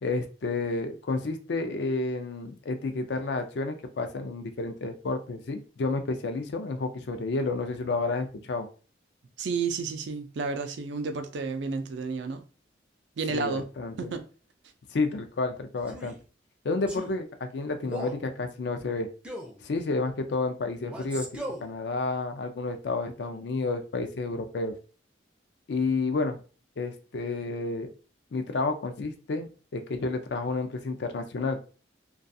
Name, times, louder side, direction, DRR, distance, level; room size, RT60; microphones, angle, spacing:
voice 1, 0.0-8.7 13.3-14.1 14.9-16.1 16.6-19.1 19.6-21.3 21.6-24.7 25.7-26.4 26.8-27.9 28.3-31.6, left 3 dB, 65° left, 0.4 m, -30 dB
voice 2, 9.4-12.4 13.2-13.7 14.0-14.2, right 4 dB, 65° right, 0.4 m, -31 dB
Male speech man speaking, 15.8-16.2 16.9-17.2 17.8-18.2 19.2-19.6 20.9-21.7, equal, 5° right, 0.4 m, -37 dB
2.3 x 2.3 x 2.6 m
head